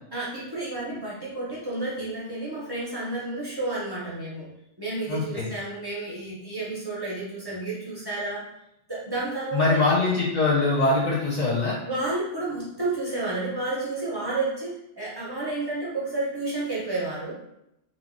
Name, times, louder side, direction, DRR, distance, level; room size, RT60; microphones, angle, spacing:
voice 1, 0.1-4.5 4.8-8.4 8.9-9.8 11.8-17.3, right 2 dB, 30° right, -7 dB, 0.4 m, -31 dB
voice 2, 5.1-5.5 9.5-11.8, left 3 dB, 65° left, -5 dB, 0.4 m, -23 dB
3.1 x 2.2 x 2.5 m, 0.83 s
omnidirectional pair, 1.3 m